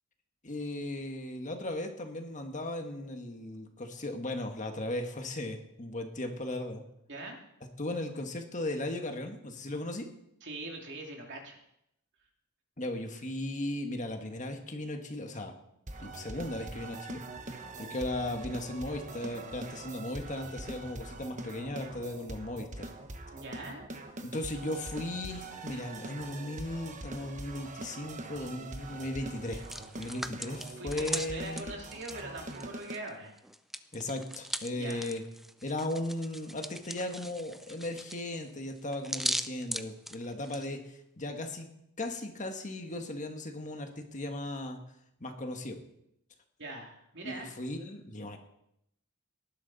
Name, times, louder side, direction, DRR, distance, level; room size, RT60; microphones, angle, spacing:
voice 1, 0.4-6.8 7.8-10.1 12.8-15.5 16.0-17.2 17.8-22.9 24.2-29.6 29.9-31.8 33.9-35.2 35.6-44.8 45.2-45.8 47.2-48.4, left 1 dB, 35° left, 4 dB, 1.6 m, -37 dB
voice 2, 10.4-11.6 23.3-23.8 30.8-33.3 34.7-35.1 46.6-47.5, right 2 dB, 55° right, 1 dB, 2.8 m, -42 dB
sound 1, 15.9-33.0, right 2 dB, 35° right, 1.2 m, -43 dB
Hands, 29.4-33.1 33.4-40.7, equal, ahead, 0.5 m, -39 dB
18.5 x 11.5 x 4.1 m, 0.77 s
head